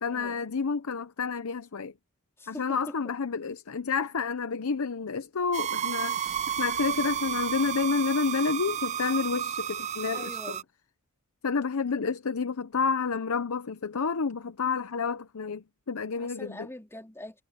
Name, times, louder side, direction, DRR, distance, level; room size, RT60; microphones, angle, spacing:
voice 1, 0.0-1.9 2.5-10.3 11.4-16.7, left 5 dB, 80° left, 0.7 m, -30 dB
voice 2, 2.4-2.9 10.1-10.6 16.1-17.4, left 1 dB, 10° left, 4.1 m, -42 dB
sound 1, 5.5-10.6, right 9 dB, 30° right, 0.3 m, -31 dB
sound 2, 6.2-9.0, left 1 dB, 55° left, 3.2 m, -55 dB
head